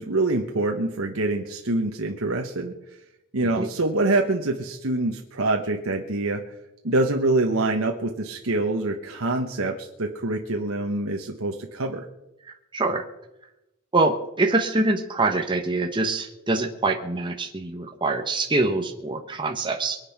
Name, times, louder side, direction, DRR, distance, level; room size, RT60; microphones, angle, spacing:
voice 1, 0.0-2.7 3.3-6.4 6.8-12.1, right 2 dB, 75° right, 2 dB, 1.2 m, -25 dB
voice 2, 12.4-13.0 13.9-20.0, right 2 dB, 20° right, 3 dB, 1.1 m, -25 dB
23.5 x 8.5 x 5.9 m, 0.94 s
head